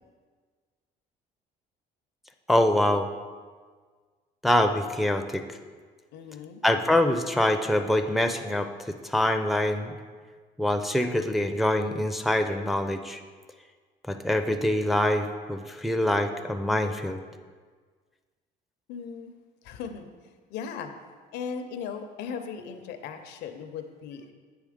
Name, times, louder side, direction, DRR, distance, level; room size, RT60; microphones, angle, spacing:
voice 1, 2.5-3.1 4.4-5.4 6.6-9.9 10.6-13.2 14.1-17.2, left 1 dB, ahead, 6 dB, 0.4 m, -25 dB
voice 2, 6.1-6.6 18.9-19.3 19.6-20.1 20.5-20.9 21.3-24.3, left 6 dB, 85° left, 7 dB, 0.6 m, -37 dB
7.9 x 3.4 x 5.0 m, 1.5 s
cardioid pair, 110°, 17 cm